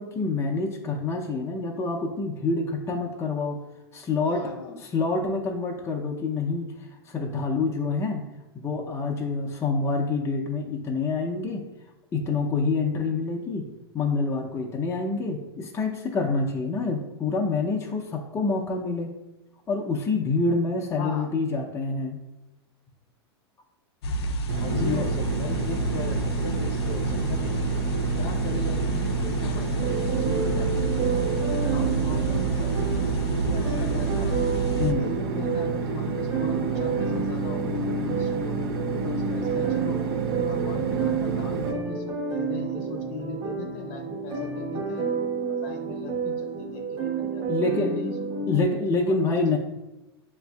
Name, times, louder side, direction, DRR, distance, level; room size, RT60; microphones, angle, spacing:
voice 1, 0.0-3.6 3.9-4.4 4.9-8.2 8.5-11.6 12.1-13.7 13.9-19.1 19.7-22.2 24.8-25.0 34.8-35.0 47.5-47.9 48.5-49.6, left 3 dB, 20° left, 0 dB, 0.5 m, -27 dB
voice 2, 4.2-4.8 21.0-21.3 24.6-27.6 28.2-31.2 31.7-34.4 34.9-40.0 40.4-45.1 45.5-49.6, left 3 dB, 50° left, 3 dB, 0.8 m, -38 dB
sound 1, 24.0-34.9, right 3 dB, 70° left, 0.5 m, -29 dB
sound 2, 24.5-41.7, right 5 dB, 65° right, 0.7 m, -31 dB
sound 3, 29.8-48.6, right 5 dB, 40° right, 1.1 m, -30 dB
7.1 x 2.5 x 2.3 m, 0.99 s
hypercardioid pair, 105°, 14 cm